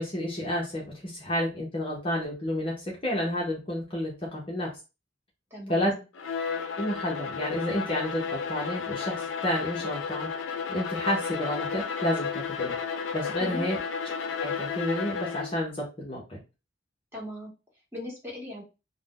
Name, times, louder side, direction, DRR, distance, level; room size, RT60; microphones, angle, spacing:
voice 1, 0.0-4.7 5.7-5.9 6.8-10.3 10.7-12.8 13.1-13.8 14.4-16.4, left 1 dB, 30° left, -3 dB, 0.7 m, -30 dB
voice 2, 5.5-6.0 13.4-13.6 17.1-17.5 17.9-18.6, left 1 dB, 10° right, -5 dB, 1.2 m, -38 dB
Bowed string instrument, 6.1-15.6, left 6 dB, 75° left, 0.4 m, -33 dB
2.4 x 2.1 x 3.6 m, 0.29 s
head